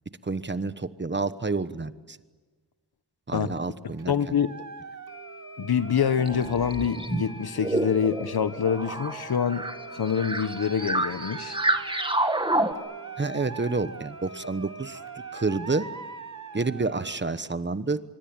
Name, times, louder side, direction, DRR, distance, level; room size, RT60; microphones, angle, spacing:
voice 1, 0.2-2.2 3.3-4.3 13.2-15.9 16.5-18.0, right 3 dB, 30° right, 1.1 m, -29 dB
voice 2, 3.8-4.5 5.6-9.7 9.9-11.6, left 7 dB, 75° left, 1.1 m, -26 dB
sound 1, 4.0-17.2, right 5 dB, 50° right, 1.2 m, -42 dB
sound 2, 4.0-4.1 5.1-17.5, right 1 dB, 80° right, 3.7 m, -49 dB
sound 3, 6.2-12.7, right 1 dB, 15° right, 1.8 m, -29 dB
25.5 x 24.5 x 9.0 m
wide cardioid pair, 115°, 38 cm